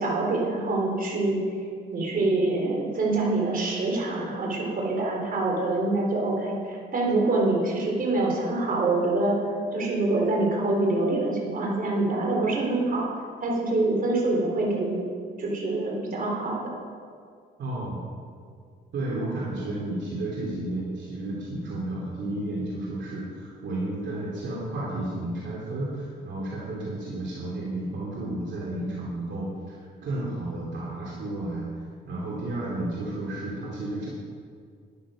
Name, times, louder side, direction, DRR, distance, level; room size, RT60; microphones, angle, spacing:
voice 1, 0.0-1.4 1.9-9.4 9.7-13.1 13.4-15.1 15.4-16.6, right 2 dB, 45° right, -2 dB, 3.8 m, -25 dB
voice 2, 17.6-18.0 18.9-31.6 32.1-34.1, right 1 dB, 65° right, -5 dB, 2.9 m, -32 dB
12.5 x 10.5 x 5.1 m, 2.1 s
cardioid pair, 90°, 20 cm